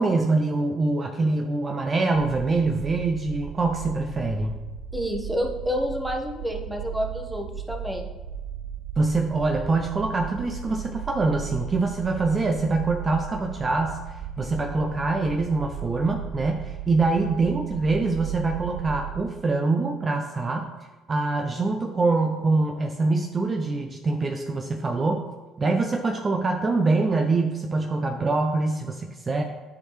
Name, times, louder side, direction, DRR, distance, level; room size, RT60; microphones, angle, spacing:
voice 1, 0.0-4.5 9.0-20.7 21.1-25.3 25.6-29.4, right 3 dB, 35° right, 4 dB, 0.6 m, -24 dB
sound 1, 2.1-19.2, right 7 dB, 80° right, 0.6 m, -36 dB
voice 2, 4.9-8.1, equal, 5° right, 2 dB, 1.2 m, -29 dB
9.8 x 4.5 x 3.2 m, 1.3 s
hypercardioid pair, 60°, 0 cm